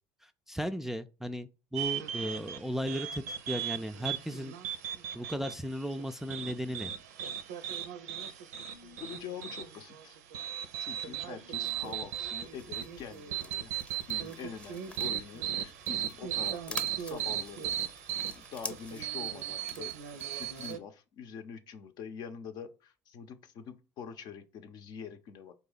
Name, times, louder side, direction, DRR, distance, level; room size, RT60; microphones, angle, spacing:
voice 1, 0.2-4.5 5.1-6.9, equal, 5° right, 0.3 m, -36 dB
sound 1, 1.8-20.8, right 10 dB, 85° right, 0.5 m, -37 dB
sound 2, 8.5-9.1 11.3-11.8, left 5 dB, 85° left, 0.8 m, -57 dB
voice 2, 9.0-10.2 10.8-13.7 14.1-25.5, left 7 dB, 60° left, 0.7 m, -45 dB
sound 3, 11.6-20.7, left 1 dB, 10° left, 0.8 m, -48 dB
4.0 x 2.7 x 3.9 m
hypercardioid pair, 70°, 8 cm